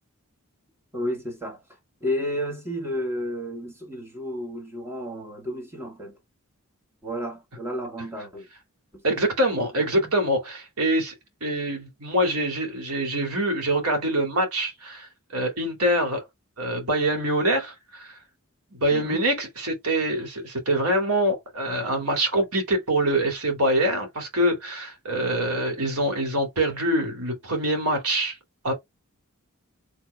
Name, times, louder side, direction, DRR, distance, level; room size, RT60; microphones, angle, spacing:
voice 1, 0.9-1.6 2.0-6.2 7.0-8.5 8.9-9.0 9.8-10.1 18.9-19.2, equal, 10° right, 1.5 m, -32 dB
voice 2, 9.0-11.1 11.4-16.2 16.6-18.1 18.7-28.4 28.6-28.7, right 1 dB, 85° right, 2.5 m, -25 dB
4.6 x 3.5 x 3.3 m
head